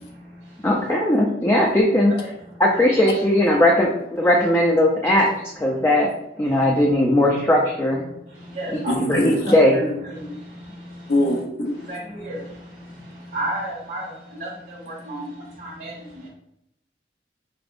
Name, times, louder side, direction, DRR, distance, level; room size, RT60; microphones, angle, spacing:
voice 1, 0.0-0.9 2.1-2.6 2.9-3.4 4.1-4.5 5.1-6.1 6.4-6.8 7.2-7.4 7.9-11.3 11.7-16.3, right 1 dB, 70° right, -6 dB, 1.0 m, -35 dB
voice 2, 0.6-2.1 2.6-5.3 5.6-6.1 6.4-8.0 8.7-8.8 9.1-9.8, left 1 dB, 15° left, -2 dB, 0.3 m, -18 dB
voice 3, 8.9-9.4 11.1-11.9, left 1 dB, 65° left, 1 dB, 0.7 m, -23 dB
4.9 x 2.0 x 2.5 m, 0.81 s
head